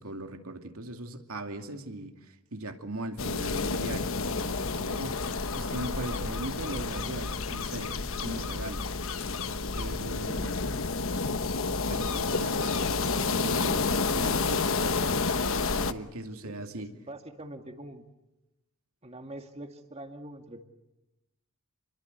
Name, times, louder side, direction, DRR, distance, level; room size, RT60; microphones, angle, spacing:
voice 1, 0.0-7.9 8.2-8.8 9.8-10.7 11.9-14.7 15.9-16.9, right 1 dB, 75° right, 5 dB, 2.5 m, -39 dB
sound 1, 3.2-15.9, left 4 dB, 65° left, 1.2 m, -30 dB
voice 2, 16.4-18.1 19.0-20.6, right 1 dB, 30° right, 5 dB, 2.2 m, -44 dB
29.0 x 22.0 x 8.2 m, 0.98 s
head